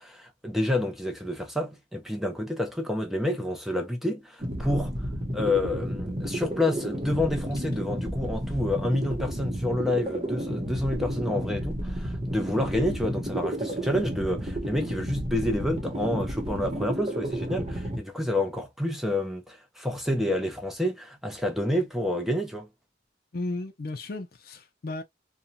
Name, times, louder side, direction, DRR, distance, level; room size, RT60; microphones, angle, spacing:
voice 1, 0.0-5.0 5.3-22.7, left 1 dB, ahead, 0.5 m, -29 dB
sound 1, 4.4-18.0, right 1 dB, 30° right, 0.8 m, -32 dB
voice 2, 23.3-25.0, left 2 dB, 55° left, 0.5 m, -34 dB
2.6 x 2.2 x 2.6 m
head